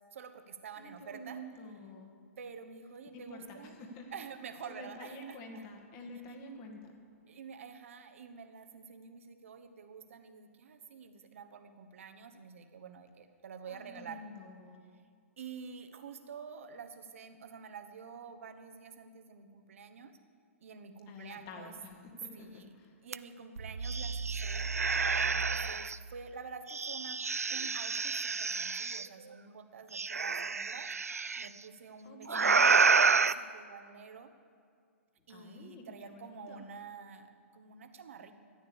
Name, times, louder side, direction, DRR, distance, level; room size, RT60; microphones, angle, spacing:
voice 1, 0.1-1.4 2.4-3.8 4.1-5.6 7.3-14.2 15.4-20.1 20.6-21.8 22.3-22.7 23.0-24.7 25.1-27.2 27.5-30.9 31.4-34.3 35.3-38.3, right 6 dB, 60° right, 7 dB, 1.1 m, -48 dB
voice 2, 0.8-2.1 3.1-4.2 4.6-6.9 13.7-14.8 21.1-22.0 22.2-23.0 32.0-32.7 35.3-36.6, left 1 dB, 35° left, 2 dB, 2.0 m, -48 dB
sound 1, 23.1-23.2 23.6-26.0 26.7-29.1 29.9-31.5 32.3-33.3, right 4 dB, 90° right, 0.4 m, -29 dB
13.0 x 9.3 x 7.0 m, 2.2 s
figure-of-eight pair, 120°, 8 cm